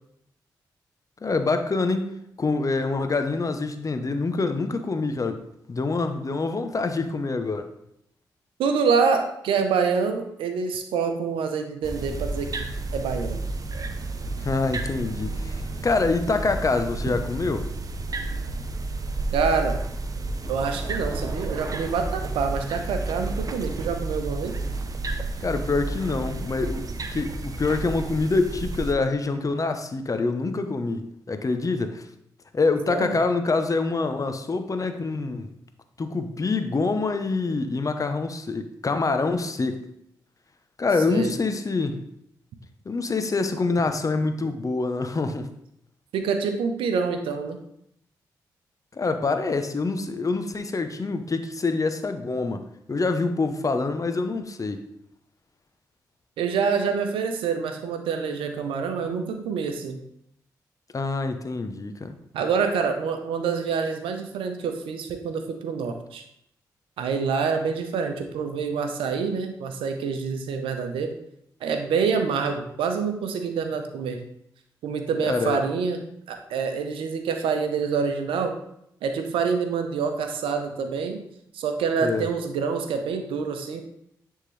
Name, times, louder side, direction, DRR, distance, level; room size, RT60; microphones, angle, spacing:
voice 1, 1.2-7.7 14.4-17.7 25.4-26.9 27.1-32.0 32.5-35.5 36.0-39.8 40.8-42.0 42.8-45.5 48.9-54.8 60.9-62.1 75.3-75.6 82.0-82.3, left 3 dB, 40° left, 8 dB, 0.8 m, -26 dB
voice 2, 8.6-12.6 12.9-13.4 19.3-19.8 20.5-24.5 32.9-33.2 41.1-41.3 46.1-47.6 56.4-60.0 62.3-66.2 67.0-71.1 71.6-74.3 74.8-78.5 79.0-81.2 81.5-83.8, right 5 dB, 80° right, 6 dB, 0.7 m, -26 dB
sound 1, 11.8-28.9, right 2 dB, 40° right, 0.7 m, -31 dB
9.8 x 3.7 x 3.2 m, 0.75 s
supercardioid pair, 40°, 9 cm